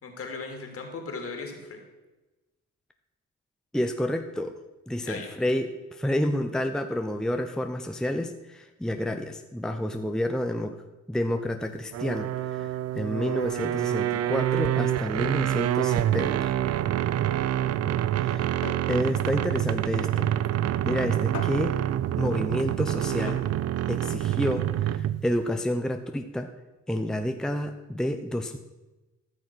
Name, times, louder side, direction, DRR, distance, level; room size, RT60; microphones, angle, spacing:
voice 1, 0.0-1.8 5.0-5.3, left 4 dB, 50° left, 4 dB, 2.7 m, -37 dB
voice 2, 3.7-4.5 4.9-10.8 11.1-12.7 12.9-16.5 18.2-18.6 18.9-20.3 20.8-21.8 22.2-23.4 23.9-26.5 26.9-28.6, left 1 dB, ahead, 6 dB, 0.7 m, -29 dB
sound 1, 11.9-25.3, right 12 dB, 55° right, 0.5 m, -27 dB
sound 2, 12.6-24.8, left 6 dB, 65° left, 1.6 m, -46 dB
14.0 x 6.3 x 6.1 m, 1.1 s
cardioid pair, 90°, 30 cm